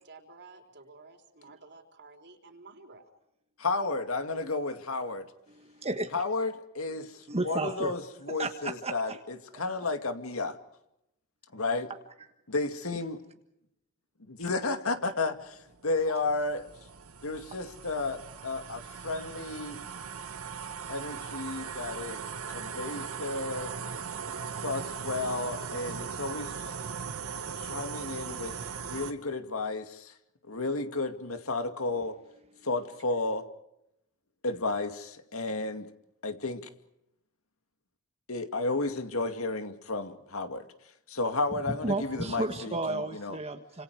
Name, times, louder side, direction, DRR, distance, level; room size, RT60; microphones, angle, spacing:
voice 1, 0.0-3.0, right 3 dB, 55° right, 4.1 m, -52 dB
voice 2, 3.6-5.3 6.1-10.6 11.5-11.9 12.5-13.2 14.3-16.7 17.2-19.8 20.9-22.2 22.5-23.7 24.6-26.7 27.6-30.1 30.5-32.2 32.6-33.5 34.4-35.9 36.2-36.7 38.3-40.7 41.1-43.4, left 3 dB, 70° left, 2.3 m, -32 dB
voice 3, 5.5-6.2 7.0-7.9 8.4-9.2 32.5-32.7 41.7-43.8, right 2 dB, 30° right, 1.5 m, -34 dB
sound 1, 15.6-29.1, right 6 dB, 80° right, 1.9 m, -39 dB
29.0 x 27.0 x 4.9 m
head